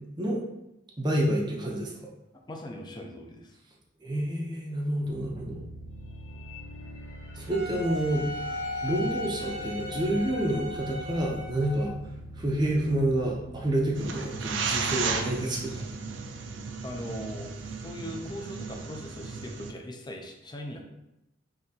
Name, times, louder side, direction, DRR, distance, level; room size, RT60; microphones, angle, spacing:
voice 1, 1.0-1.9 4.0-5.6 7.4-8.3 8.8-11.9 12.3-15.8, right 1 dB, 20° right, -2 dB, 0.6 m, -28 dB
voice 2, 2.5-3.5 16.8-17.5 17.8-20.8, left 1 dB, 20° left, 2 dB, 0.5 m, -40 dB
sound 1, 5.0-15.9, left 1 dB, 75° left, 0.6 m, -42 dB
Wind instrument woodwind instrument, 7.5-12.0, left 1 dB, 90° right, 0.9 m, -38 dB
sound 2, 13.9-19.7, right 4 dB, 70° right, 0.4 m, -34 dB
5.5 x 2.8 x 2.8 m, 0.88 s
head